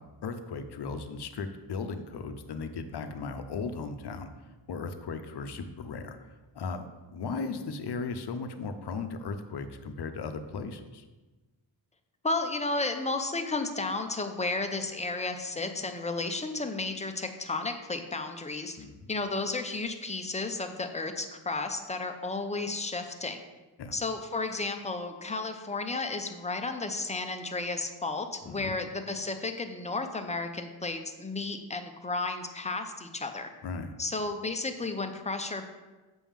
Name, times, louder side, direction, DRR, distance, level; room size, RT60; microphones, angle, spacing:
voice 1, 0.2-4.3 4.7-6.2 6.6-6.8 7.1-11.0 18.8-19.1 23.8-23.9 28.5-28.8 33.6-33.9, left 4 dB, 55° left, 8 dB, 0.7 m, -36 dB
voice 2, 12.2-18.8 19.1-23.4 23.9-33.5 34.0-35.7, left 3 dB, 15° left, 6 dB, 0.5 m, -33 dB
7.2 x 6.1 x 3.6 m, 1.2 s
wide cardioid pair, 140°, 48 cm